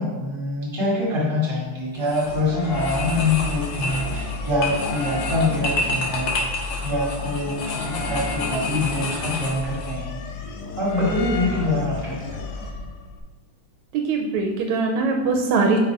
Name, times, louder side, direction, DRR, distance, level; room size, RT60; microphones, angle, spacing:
voice 1, 0.0-6.3 6.8-10.2 10.8-12.7, left 2 dB, 10° right, -5 dB, 1.6 m, -25 dB
sound 1, 1.9-2.3 2.7-10.0, left 2 dB, 60° left, 1.9 m, -30 dB
sound 2, 2.3-13.2, left 2 dB, 80° left, 2.0 m, -32 dB
voice 2, 13.9-15.8, right 4 dB, 80° right, 2 dB, 1.9 m, -21 dB
5.8 x 4.7 x 4.8 m, 1.3 s
omnidirectional pair, 3.4 m